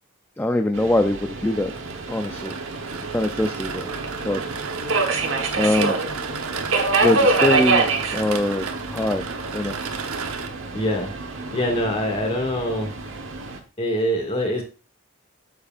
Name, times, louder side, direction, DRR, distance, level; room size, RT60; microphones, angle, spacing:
voice 1, 0.4-1.7 2.1-2.6 3.1-3.9 4.2-4.4 5.6-6.0 7.0-8.6 8.9-9.3 9.5-9.8, left 1 dB, 10° left, 6 dB, 0.4 m, -23 dB
Subway metro underground, 0.7-13.6, right 3 dB, 65° right, 1.3 m, -26 dB
sound 1, 1.5-10.5, right 5 dB, 90° right, 1.0 m, -33 dB
voice 2, 10.7-11.1 11.5-12.9 13.8-14.6, equal, 25° left, 3 dB, 2.0 m, -24 dB
8.5 x 7.3 x 2.5 m, 0.33 s
head